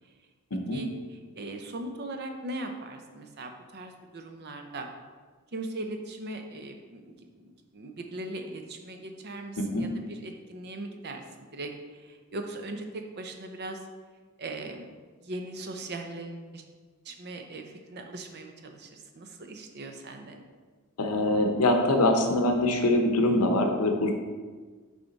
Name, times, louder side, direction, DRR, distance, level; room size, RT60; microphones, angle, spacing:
voice 1, 1.3-4.9 5.5-13.8 14.4-14.9 15.2-16.6 17.0-20.4, right 2 dB, 50° right, 5 dB, 0.7 m, -39 dB
voice 2, 21.0-24.1, left 1 dB, 85° left, 4 dB, 0.8 m, -24 dB
6.9 x 4.9 x 4.0 m, 1.5 s
head